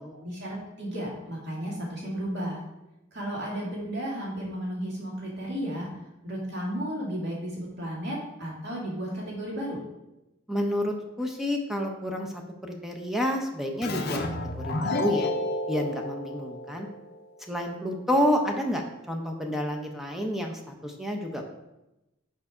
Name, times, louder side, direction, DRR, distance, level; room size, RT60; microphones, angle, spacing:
voice 1, 0.1-2.6 3.1-5.9 6.2-9.8, equal, 55° right, -4 dB, 2.2 m, -33 dB
voice 2, 10.5-15.3 15.7-16.9 17.4-21.4, equal, ahead, 2 dB, 0.6 m, -29 dB
Keyboard (musical), 13.8-17.2, left 2 dB, 50° left, 0.6 m, -31 dB
5.3 x 4.7 x 4.9 m, 0.94 s
head